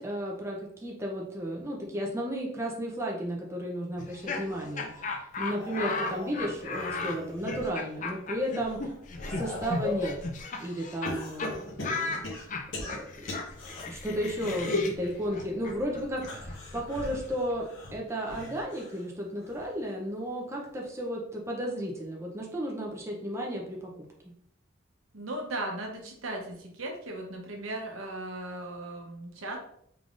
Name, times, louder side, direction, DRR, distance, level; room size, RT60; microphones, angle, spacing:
voice 1, 0.0-8.9 9.4-10.2 10.6-12.6 12.9-13.3 13.9-23.9, equal, 15° right, -2 dB, 0.5 m, -34 dB
Laughter, 4.0-11.1 11.4-11.5 11.8-17.6, left 3 dB, 40° left, 0.4 m, -36 dB
sound 1, 5.4-7.7 8.2-10.2 11.0-13.8 14.3-15.0 16.2-19.0 19.4-19.8 21.0-21.1, left 2 dB, 65° left, 1.0 m, -38 dB
voice 2, 25.1-29.6, right 1 dB, 85° right, 1 dB, 0.8 m, -37 dB
3.7 x 3.5 x 2.4 m, 0.69 s
head